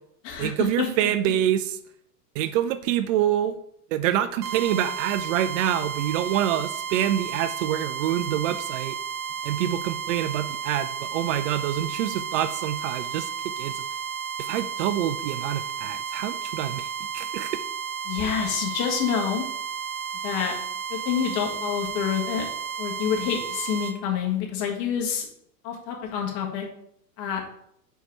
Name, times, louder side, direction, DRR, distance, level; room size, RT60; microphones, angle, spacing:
voice 1, 0.4-1.8 2.4-3.6 3.9-9.0 9.4-13.9 14.4-17.6, right 11 dB, 50° right, 12 dB, 0.5 m, -26 dB
sound 1, 4.4-24.0, right 7 dB, 80° right, 0.9 m, -33 dB
voice 2, 18.0-19.4 20.2-20.5 20.9-22.4 22.8-25.2 25.6-26.6 27.2-27.4, left 8 dB, 45° left, 1 dB, 1.7 m, -27 dB
4.6 x 4.5 x 5.4 m, 0.71 s
hypercardioid pair, 105°, 48 cm